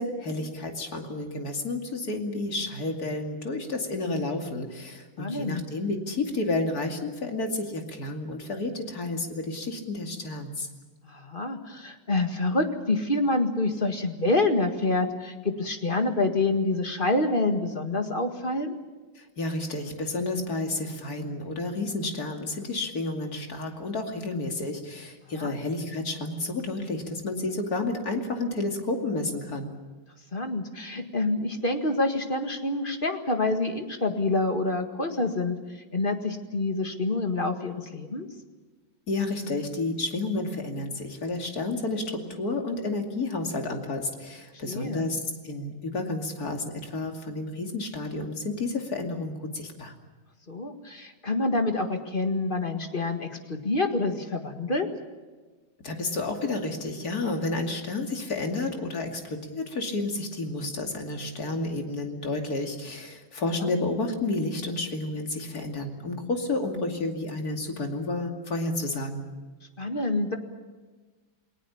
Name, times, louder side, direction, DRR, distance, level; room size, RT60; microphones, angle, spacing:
voice 1, 0.0-10.7 19.2-29.7 39.1-45.2 45.4-49.9 55.8-69.2, left 2 dB, 45° left, 3 dB, 3.0 m, -31 dB
voice 2, 5.2-5.6 11.1-18.8 25.3-25.5 30.3-35.6 35.9-38.3 44.7-45.1 50.5-54.9 63.6-63.7 69.8-70.4, left 2 dB, 25° left, 5 dB, 1.8 m, -27 dB
29.0 x 19.0 x 7.2 m, 1.3 s
omnidirectional pair, 2.2 m